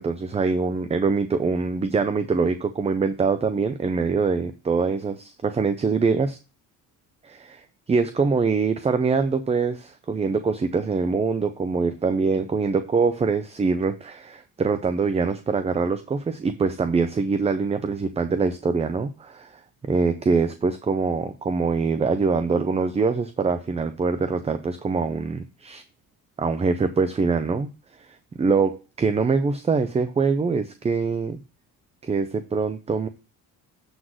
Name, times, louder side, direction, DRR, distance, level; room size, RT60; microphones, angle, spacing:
voice 1, 0.0-6.4 7.2-19.6 19.9-25.8 26.4-27.7 28.0-31.4 32.0-33.1, right 4 dB, 15° right, 10 dB, 0.5 m, -24 dB
7.9 x 3.9 x 6.1 m, 0.31 s
cardioid pair, 120°, 38 cm